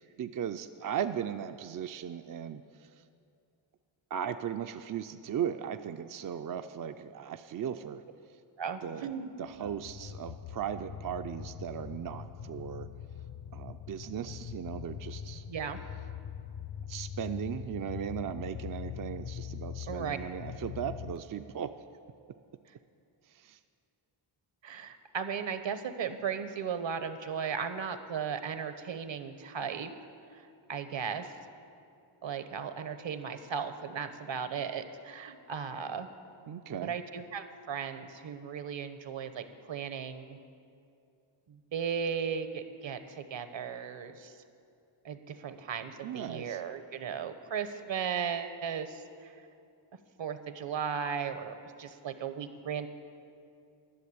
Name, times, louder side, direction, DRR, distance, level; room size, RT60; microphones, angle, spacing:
voice 1, 0.2-3.0 4.1-8.0 8.8-9.1 9.4-12.9 13.5-15.4 16.9-21.7 23.3-23.6 36.5-36.9 46.0-46.6, right 9 dB, 45° right, 8 dB, 0.4 m, -37 dB
voice 2, 8.6-9.3 15.5-15.8 19.9-20.2 24.6-29.9 30.7-31.3 32.2-36.1 36.8-40.4 41.5-44.3 45.0-49.3 50.2-52.9, right 7 dB, 65° right, 10 dB, 1.0 m, -36 dB
sound 1, 9.5-21.2, left 8 dB, 55° left, 0.7 m, -42 dB
11.5 x 6.8 x 9.5 m, 2.6 s
cardioid pair, 80°, 48 cm